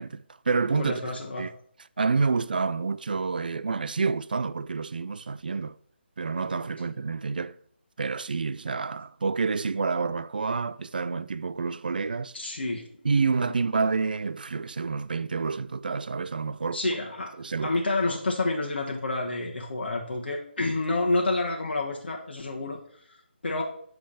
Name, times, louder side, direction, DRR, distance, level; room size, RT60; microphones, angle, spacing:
voice 1, 0.0-1.0 1.4-1.5 2.0-5.8 6.2-7.6 8.0-12.4 13.0-16.8 17.4-17.7, right 4 dB, 50° right, 0.4 m, -28 dB
voice 2, 0.8-1.5 12.3-12.8 16.7-17.3 17.6-23.6, left 2 dB, 60° left, 1.2 m, -29 dB
8.5 x 3.4 x 5.6 m
hypercardioid pair, 175°, 6 cm